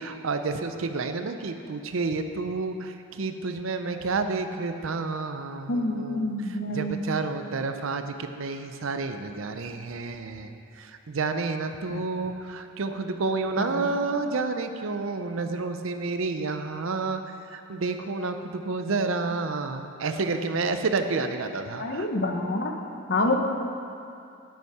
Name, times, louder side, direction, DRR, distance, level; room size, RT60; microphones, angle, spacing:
voice 1, 0.0-22.1, right 3 dB, 70° right, 8 dB, 0.6 m, -30 dB
voice 2, 5.7-7.0 11.9-12.0 13.6-13.9 21.8-22.7 23.1-23.4, left 2 dB, 50° left, 4 dB, 0.8 m, -27 dB
8.9 x 8.1 x 4.9 m, 2.6 s
head